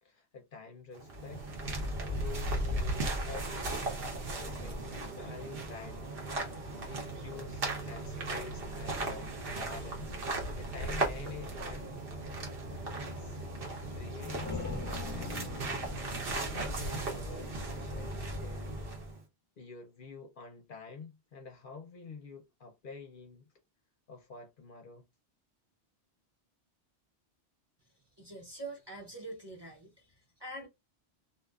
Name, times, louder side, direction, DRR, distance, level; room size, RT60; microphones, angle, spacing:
voice 1, 0.0-1.5 2.0-3.9 4.3-6.1 6.6-12.0 12.9-13.4 13.9-15.7 16.0-18.8 19.6-23.5 24.1-25.1, left 4 dB, 60° left, 0.7 m, -48 dB
sound 1, 0.9-19.2, right 2 dB, 60° right, 1.0 m, -37 dB
sound 2, 14.1-17.6, left 4 dB, 10° left, 0.7 m, -43 dB
voice 2, 28.2-30.7, right 2 dB, 25° right, 0.7 m, -45 dB
2.5 x 2.3 x 2.3 m
omnidirectional pair, 1.1 m